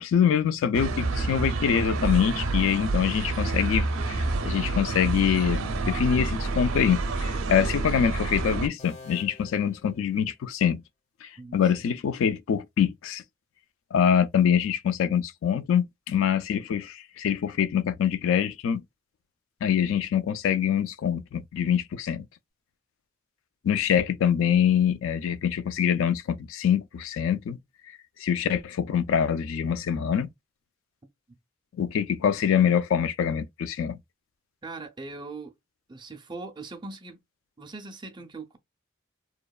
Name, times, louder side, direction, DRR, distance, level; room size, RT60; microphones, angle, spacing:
voice 1, 0.0-10.8 11.2-13.2 13.9-18.8 19.6-22.3 23.6-27.6 28.2-30.3 31.8-34.0, left 8 dB, 75° left, 0.3 m, -25 dB
sound 1, 0.7-8.7, right 3 dB, 80° right, 0.5 m, -28 dB
sound 2, 8.8-10.7, left 3 dB, 35° left, 0.6 m, -49 dB
voice 2, 11.4-11.7 31.3-31.4 34.6-35.5 35.9-37.2 37.6-38.6, right 3 dB, 20° right, 0.4 m, -40 dB
2.8 x 2.1 x 2.2 m
head